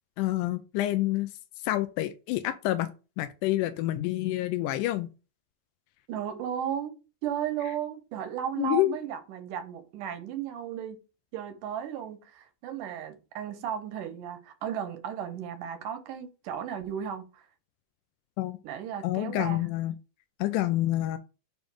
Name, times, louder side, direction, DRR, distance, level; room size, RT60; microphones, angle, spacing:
voice 1, 0.2-1.3 1.6-2.9 3.2-5.1 8.6-8.9 18.4-18.6 19.0-19.9 20.4-21.2, left 15 dB, 85° left, 2.1 m, -28 dB
voice 2, 6.1-7.0 7.2-11.0 11.3-17.4 18.6-19.7, right 9 dB, 85° right, 2.4 m, -35 dB
7.0 x 2.6 x 5.3 m
omnidirectional pair, 3.6 m